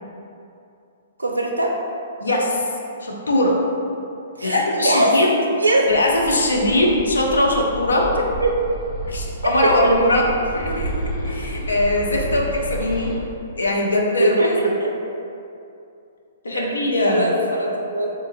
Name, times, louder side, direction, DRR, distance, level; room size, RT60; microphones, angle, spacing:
voice 1, 1.2-1.7 4.4-5.2 5.6-5.9 8.4-8.6 9.6-10.1 14.2-14.9 16.5-16.7 17.0-18.1, right 2 dB, 80° right, 0 dB, 0.3 m, -21 dB
voice 2, 2.2-2.7 3.0-3.6 4.4-5.3 5.9-8.1 9.1-10.3 10.6-13.1 13.6-14.5 16.4-17.3, left 1 dB, 75° left, -1 dB, 0.5 m, -21 dB
Bird, 5.9-13.1, right 1 dB, 15° left, 1.4 m, -31 dB
3.5 x 2.5 x 2.9 m, 2.6 s
figure-of-eight pair, 120°, 0 cm